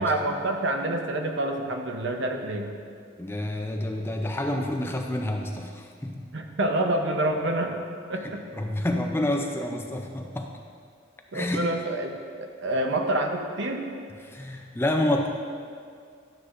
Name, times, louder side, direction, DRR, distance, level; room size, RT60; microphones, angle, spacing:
voice 1, 0.0-2.7 6.3-7.8 8.1-8.4 11.3-13.9, right 1 dB, 60° right, 4 dB, 0.7 m, -27 dB
voice 2, 3.2-6.2 8.2-10.5 11.3-11.7 14.2-15.3, left 1 dB, 10° left, 3 dB, 0.4 m, -28 dB
12.0 x 8.0 x 2.5 m, 2.2 s
head